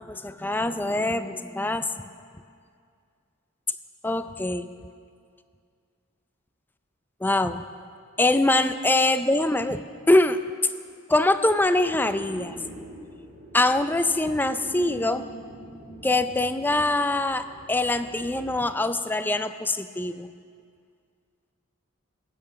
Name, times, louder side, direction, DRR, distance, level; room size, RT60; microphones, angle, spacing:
voice 1, 0.0-1.9 4.0-4.7 7.2-7.6 8.2-9.8 10.1-10.4 11.1-12.6 13.5-15.2 16.0-20.3, left 2 dB, 10° left, 10 dB, 0.4 m, -23 dB
sound 1, 11.8-18.8, equal, 40° right, 2.8 m, -44 dB
22.0 x 9.0 x 6.3 m, 2.2 s
head